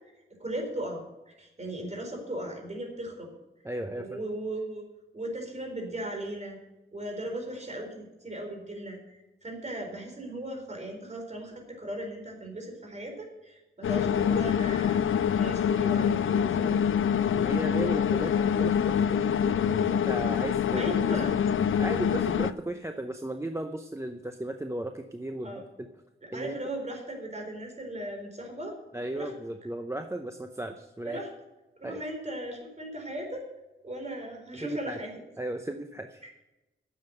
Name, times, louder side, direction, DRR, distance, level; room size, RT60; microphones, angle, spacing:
voice 1, 0.4-1.0 1.3-3.3 4.0-4.8 5.1-6.6 6.9-17.0 20.8-21.3 25.4-25.6 26.3-28.7 29.1-29.3 31.0-31.3 31.8-33.4 33.8-35.1, right 1 dB, 35° right, 2 dB, 4.0 m, -37 dB
voice 2, 3.6-4.2 17.3-20.8 21.8-25.6 26.3-26.5 28.9-31.2 31.8-32.0 34.5-35.0 35.4-36.2, right 1 dB, 15° right, 6 dB, 0.7 m, -35 dB
sound 1, 13.8-22.5, left 8 dB, 85° left, 0.5 m, -25 dB
10.5 x 7.4 x 7.8 m, 0.99 s
wide cardioid pair, 95°, 20 cm